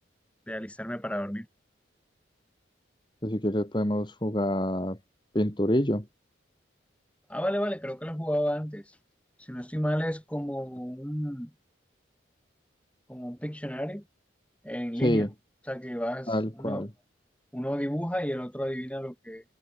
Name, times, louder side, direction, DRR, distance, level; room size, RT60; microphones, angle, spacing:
voice 1, 0.5-1.5 7.3-8.8 9.4-11.5 13.1-14.0 14.6-15.3 15.7-16.3 16.6-16.9 17.5-19.4, equal, 5° left, 6.4 m, -32 dB
voice 2, 3.2-5.0 5.3-6.1 15.0-15.3 16.3-16.9, equal, 25° left, 2.9 m, -27 dB
head